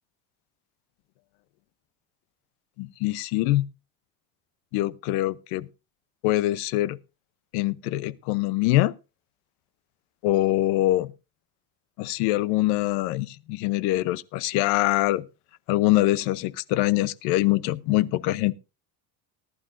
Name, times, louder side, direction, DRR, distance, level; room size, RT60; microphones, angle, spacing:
voice 1, 2.8-3.7 4.7-5.7 6.2-7.0 7.5-8.9 10.2-11.1 12.0-15.2 15.7-18.5, left 16 dB, 75° left, 0.8 m, -24 dB
18.5 x 11.5 x 2.6 m
cardioid pair, 175°, 39 cm